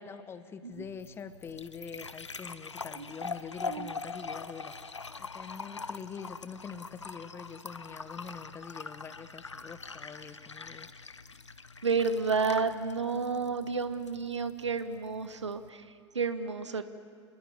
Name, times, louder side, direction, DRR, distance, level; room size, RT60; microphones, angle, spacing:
voice 1, 0.0-4.9 5.2-10.9, left 6 dB, 15° left, 12 dB, 1.1 m, -45 dB
sound 1, 0.7-15.7, left 4 dB, 80° left, 1.1 m, -43 dB
voice 2, 11.8-16.8, right 5 dB, 75° right, 11 dB, 1.3 m, -31 dB
28.0 x 20.5 x 9.3 m, 2.1 s
figure-of-eight pair, 100°, 15 cm